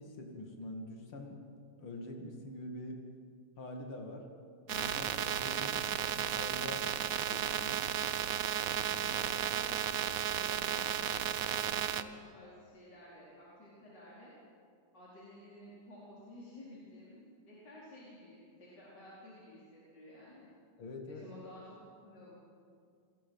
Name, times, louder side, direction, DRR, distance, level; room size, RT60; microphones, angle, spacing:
voice 1, 0.0-1.4 1.8-3.0 3.6-4.3 4.7-5.8 6.1-6.8 7.3-7.8 8.9-9.2 20.8-21.3, left 1 dB, 70° left, 2 dB, 3.2 m, -45 dB
sound 1, 4.7-12.0, right 9 dB, 60° right, 0.9 m, -34 dB
voice 2, 5.6-5.9 9.0-14.3 14.9-17.2 17.5-20.5 21.1-21.8 22.0-22.3, left 1 dB, 50° left, -8 dB, 5.3 m, -53 dB
28.0 x 21.5 x 5.6 m, 2.3 s
omnidirectional pair, 2.4 m